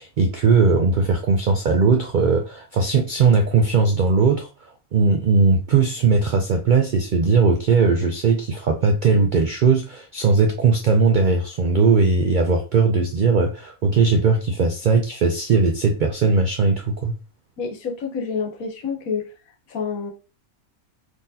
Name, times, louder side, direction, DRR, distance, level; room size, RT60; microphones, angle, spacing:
voice 1, 0.0-4.5 4.9-17.1, right 4 dB, 75° right, 0.4 m, -19 dB
voice 2, 17.6-19.3 19.7-20.1, left 5 dB, 80° left, 1.3 m, -28 dB
3.9 x 2.8 x 2.6 m
omnidirectional pair, 1.4 m